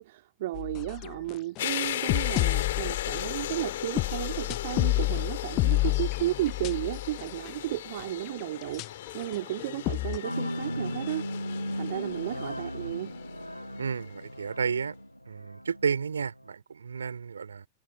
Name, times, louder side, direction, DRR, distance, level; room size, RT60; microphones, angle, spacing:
voice 1, 0.0-11.3 11.7-13.2, right 16 dB, 55° right, 2.0 m, -34 dB
sound 1, 0.5-7.5 8.0-8.1 8.7-10.2, left 21 dB, 40° left, 0.7 m, -29 dB
sound 2, 1.6-14.3, left 13 dB, 60° left, 2.4 m, -37 dB
sound 3, 10.2-16.5, equal, 90° left, 0.9 m, -36 dB
voice 2, 13.8-15.0 15.3-17.7, right 6 dB, 70° right, 4.4 m, -32 dB
figure-of-eight pair, 90°, 0 cm